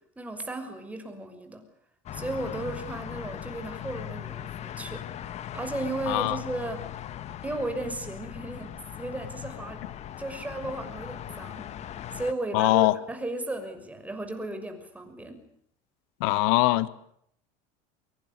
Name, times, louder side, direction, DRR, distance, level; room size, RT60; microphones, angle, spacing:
voice 1, 0.2-1.6 2.1-5.0 5.5-6.8 7.4-8.7 9.0-9.8 10.2-11.7 12.1-15.4, right 2 dB, 10° right, 6.2 m, -35 dB
sound 1, 2.1-12.3, left 11 dB, 40° left, 1.8 m, -39 dB
voice 2, 6.1-6.4 12.5-12.9 16.2-16.9, left 19 dB, 80° left, 1.8 m, -22 dB
23.5 x 23.0 x 9.8 m
cardioid pair, 135°, 17 cm